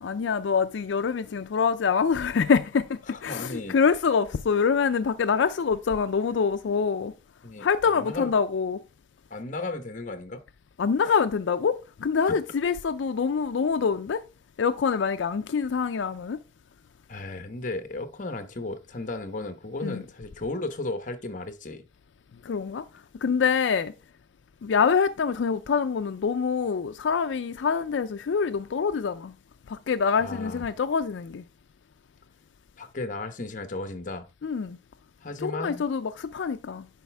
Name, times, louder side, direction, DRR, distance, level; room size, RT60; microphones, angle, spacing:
voice 1, 0.0-7.1 7.6-8.8 10.8-14.2 14.6-16.4 19.8-20.0 22.4-23.9 24.6-29.4 29.7-31.4 34.4-34.8 35.4-36.9, left 6 dB, 85° left, 0.4 m, -25 dB
voice 2, 3.1-3.8 7.4-8.3 9.3-10.4 12.2-12.4 17.1-21.9 30.2-30.7 32.8-34.3 35.2-35.9, left 2 dB, 45° left, 0.9 m, -35 dB
10.5 x 4.2 x 3.3 m
head